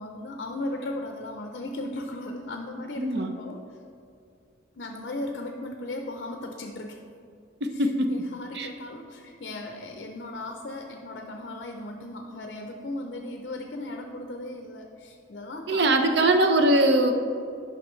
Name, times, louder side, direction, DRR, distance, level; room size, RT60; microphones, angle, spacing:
voice 1, 0.0-3.8 4.8-7.0 7.7-16.5, left 1 dB, 55° left, 4 dB, 0.5 m, -37 dB
voice 2, 3.0-3.3 7.8-8.1 8.6-8.7 15.7-17.1, right 1 dB, 60° right, 5 dB, 0.6 m, -21 dB
10.0 x 5.8 x 3.1 m, 2.5 s
head